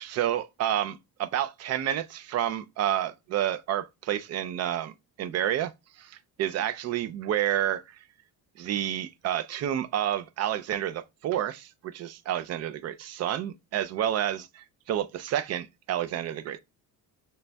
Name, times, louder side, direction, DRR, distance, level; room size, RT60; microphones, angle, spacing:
voice 1, 0.0-4.9 5.2-5.7 6.0-8.0 8.6-16.6, right 11 dB, 40° right, 0.4 m, -29 dB
6.6 x 3.3 x 2.2 m
cardioid pair, 150°, 39 cm